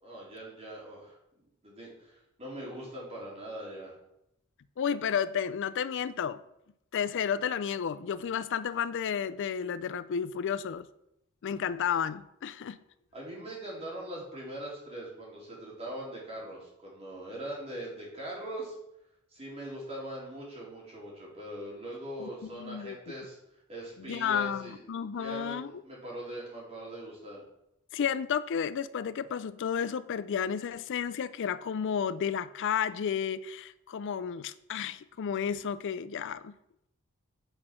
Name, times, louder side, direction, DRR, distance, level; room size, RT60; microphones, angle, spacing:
voice 1, 0.0-1.2 1.6-4.0 13.1-18.8 19.3-23.4 23.7-27.4, right 1 dB, 30° right, 3.7 m, -41 dB
voice 2, 4.8-6.4 6.9-10.9 11.4-12.8 22.2-23.1 24.1-25.8 27.9-36.5, left 7 dB, 55° left, 0.4 m, -32 dB
9.0 x 6.2 x 6.0 m
head